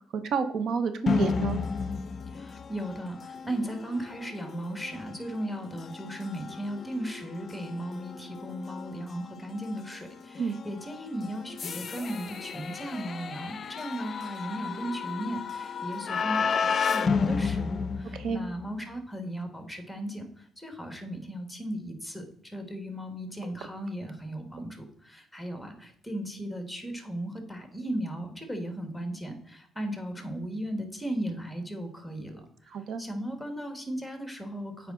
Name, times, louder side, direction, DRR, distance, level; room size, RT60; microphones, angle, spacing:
voice 1, 0.2-1.6 10.4-10.6 18.1-18.4 32.7-33.0, right 6 dB, 65° right, 10 dB, 0.6 m, -29 dB
sound 1, 1.1-18.8, left 5 dB, 50° left, 0.4 m, -33 dB
voice 2, 2.3-32.5 33.0-34.9, right 1 dB, ahead, 6 dB, 1.5 m, -36 dB
8.4 x 4.7 x 3.7 m, 0.65 s
cardioid pair, 90°, 0 cm